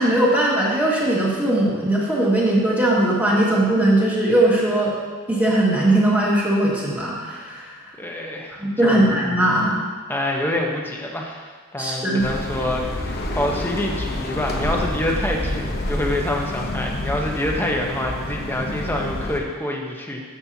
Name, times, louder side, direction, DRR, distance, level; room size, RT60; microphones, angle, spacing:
voice 1, 0.0-4.9 5.3-7.6 8.6-9.7 11.8-12.2, right 1 dB, 10° right, -6 dB, 1.9 m, -19 dB
voice 2, 8.0-9.1 10.1-20.2, left 1 dB, 10° left, 0 dB, 1.0 m, -26 dB
sound 1, 12.2-19.4, left 1 dB, 45° left, 1.0 m, -28 dB
13.0 x 7.4 x 2.8 m, 1.5 s
head